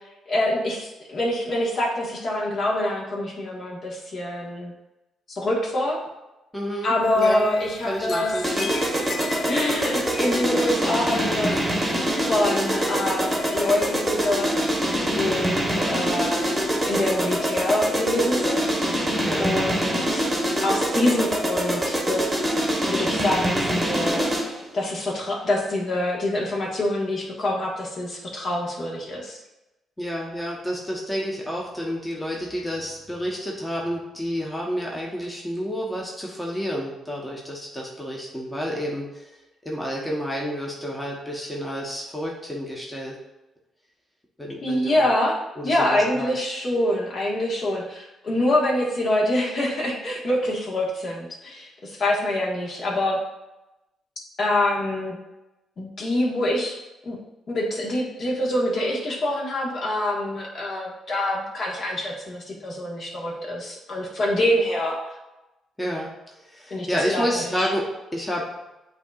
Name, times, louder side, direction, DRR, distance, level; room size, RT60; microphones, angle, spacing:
voice 1, 0.3-4.7 5.3-6.0 6.8-8.3 9.5-11.6 12.2-14.5 14.9-16.4 16.8-18.7 19.4-20.2 20.6-22.2 22.8-24.2 24.7-29.4 44.6-45.4 45.6-53.2 54.4-55.2 55.8-56.8 57.0-57.2 57.5-65.0 66.7-67.7, left 1 dB, 50° left, -3 dB, 1.4 m, -25 dB
voice 2, 6.5-7.4 7.8-8.7 19.2-19.5 30.0-39.2 39.6-43.1 44.4-45.0 45.6-46.4 65.8-66.1 66.5-67.8 68.1-68.5, equal, 10° left, -3 dB, 0.9 m, -30 dB
sound 1, 7.0-17.4, left 4 dB, 70° left, 0.6 m, -40 dB
sound 2, 8.4-24.6, equal, 15° right, 1.1 m, -24 dB
8.0 x 2.8 x 2.4 m, 1.0 s
cardioid pair, 90°, 0 cm